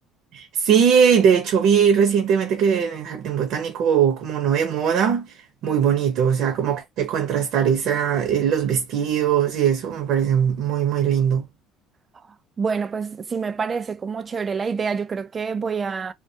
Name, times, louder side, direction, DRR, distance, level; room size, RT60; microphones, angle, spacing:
voice 1, 0.3-5.3 5.6-11.4, right 7 dB, 65° right, 0.7 m, -20 dB
voice 2, 12.6-16.1, right 5 dB, 30° right, 0.3 m, -27 dB
2.2 x 2.1 x 2.8 m
cardioid pair, 115°, 0 cm